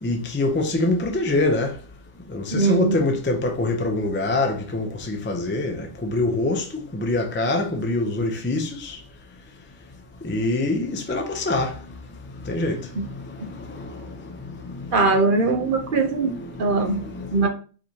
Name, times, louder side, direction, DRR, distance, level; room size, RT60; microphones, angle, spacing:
voice 1, 0.0-1.7 2.3-6.6 6.9-9.0 10.2-11.7 12.5-12.8 16.7-17.3, left 2 dB, 20° left, 0.3 m, -24 dB
voice 2, 2.5-3.2 12.9-13.0 14.9-17.0 17.3-17.5, right 3 dB, 45° right, 0.9 m, -21 dB
4.9 x 3.3 x 2.8 m
omnidirectional pair, 1.4 m